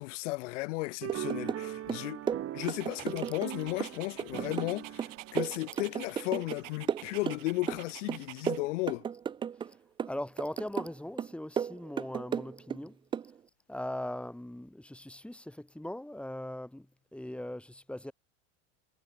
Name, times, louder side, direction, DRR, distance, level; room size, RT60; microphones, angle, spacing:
voice 1, 0.0-2.2 2.5-9.0, left 22 dB, 70° left, 1.1 m, -35 dB
sound 1, 1.0-6.6, right 12 dB, 35° right, 3.2 m, -41 dB
sound 2, 1.1-1.6 1.9-3.5 3.8-6.6 6.9-9.7 10.0-10.9 11.2-12.8 13.1-13.3, right 8 dB, 15° right, 0.4 m, -34 dB
Dog, 2.6-8.6, right 18 dB, 75° right, 1.5 m, -48 dB
voice 2, 10.1-13.0 13.7-18.1, left 1 dB, 5° left, 4.6 m, -40 dB
hypercardioid pair, 110°, 38 cm